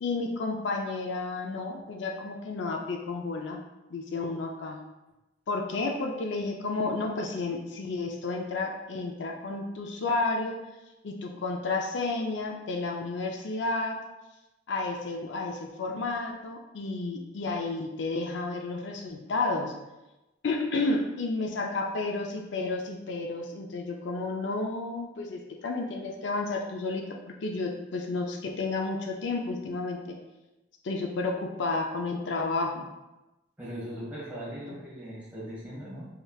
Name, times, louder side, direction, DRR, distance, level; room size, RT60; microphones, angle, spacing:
voice 1, 0.0-3.6 3.9-4.8 5.5-10.6 11.0-14.0 14.7-19.7 20.4-30.2 30.8-32.9 34.7-34.8, left 3 dB, 70° left, 2 dB, 0.5 m, -31 dB
voice 2, 33.6-36.1, equal, 10° right, -8 dB, 1.4 m, -39 dB
4.8 x 3.3 x 2.3 m, 1.0 s
head